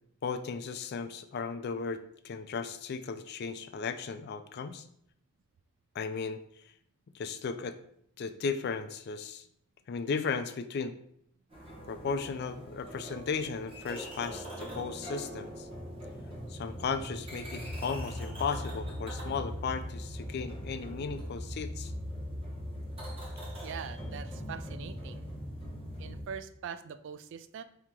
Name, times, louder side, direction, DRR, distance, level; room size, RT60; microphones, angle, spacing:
voice 1, 0.2-4.9 5.9-6.7 7.1-7.8 8.2-9.5 9.9-11.0 11.9-15.7 16.5-21.9, left 5 dB, 50° left, 10 dB, 0.3 m, -35 dB
sound 1, 11.5-26.2, equal, 25° right, 0.9 m, -40 dB
voice 2, 23.6-25.3 26.0-27.6, right 7 dB, 60° right, 11 dB, 0.3 m, -42 dB
4.4 x 2.8 x 3.6 m, 0.70 s
head